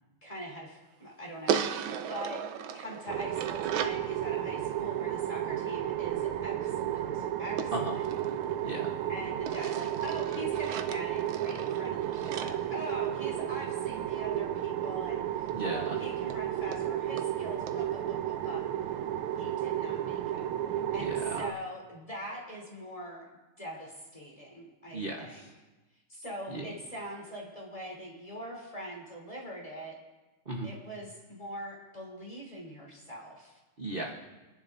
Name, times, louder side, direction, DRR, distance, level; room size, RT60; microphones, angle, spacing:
voice 1, 0.2-2.4 2.7-8.0 9.1-18.7 19.3-23.3 23.6-25.4 26.1-30.0 30.6-33.6, equal, 15° left, -3 dB, 3.2 m, -43 dB
sound 1, 1.5-4.1 7.6-9.0 9.5-13.6 15.5-15.6 15.9-16.0 16.3-16.4 16.7-16.8 17.2-17.3 17.7-17.8, right 8 dB, 70° right, 1.4 m, -37 dB
sound 2, 3.1-21.5, right 11 dB, 90° right, 1.6 m, -33 dB
voice 2, 15.5-16.0 21.0-21.3 24.9-25.5 26.5-26.7 30.5-30.7 33.8-34.1, right 2 dB, 35° right, -1 dB, 0.9 m, -36 dB
27.5 x 11.0 x 2.6 m, 1.1 s
omnidirectional pair, 2.4 m